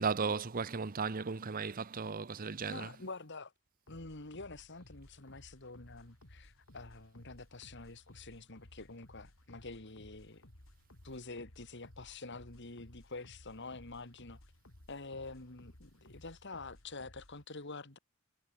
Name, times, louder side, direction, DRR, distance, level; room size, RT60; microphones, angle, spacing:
voice 1, 0.0-2.9, right 5 dB, 45° right, 0.8 m, -35 dB
voice 2, 2.7-3.5 3.9-10.4 11.0-14.4 14.9-18.0, left 3 dB, 60° left, 2.6 m, -47 dB
sound 1, 3.9-17.5, left 1 dB, 90° left, 3.6 m, -59 dB
head